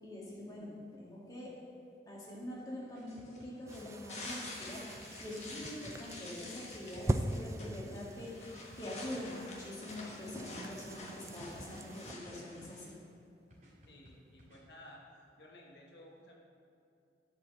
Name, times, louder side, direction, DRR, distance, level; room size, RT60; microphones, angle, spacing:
voice 1, 0.0-1.6 2.1-13.0, left 1 dB, 20° left, -5 dB, 2.0 m, -44 dB
sound 1, 2.9-4.0 4.6-5.7 6.4-7.5 8.2-9.3 9.9-11.1 11.7-12.8 13.5-14.6, equal, 45° right, 2.6 m, -59 dB
sound 2, 3.1-13.0, left 2 dB, 35° left, 1.4 m, -49 dB
sound 3, 3.7-12.1, right 1 dB, 15° right, 0.3 m, -42 dB
voice 2, 13.9-15.0 15.4-16.4, left 1 dB, 70° left, -2 dB, 1.2 m, -55 dB
12.0 x 4.9 x 7.3 m, 2.6 s
head